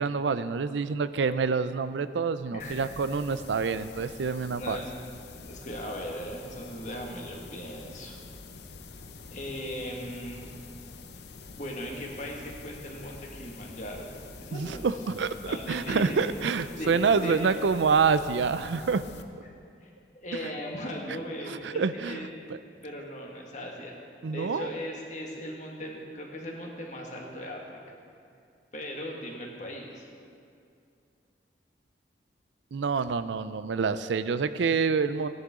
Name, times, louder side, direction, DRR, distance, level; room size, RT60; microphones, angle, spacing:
voice 1, 0.0-4.8 14.5-19.0 20.4-20.5 21.5-22.6 24.2-24.7 32.7-35.3, right 5 dB, 85° right, 13 dB, 0.5 m, -27 dB
voice 2, 2.5-2.9 4.5-4.9 5.4-8.2 9.3-10.5 11.6-14.1 14.4-14.9 15.5-16.2 16.7-17.5 19.8-22.3 22.8-23.9 24.3-28.0 28.7-30.1, equal, 40° left, -1 dB, 1.8 m, -38 dB
sound 1, 2.6-19.2, left 3 dB, 70° left, 0.7 m, -46 dB
17.5 x 10.5 x 3.7 m, 2.4 s
head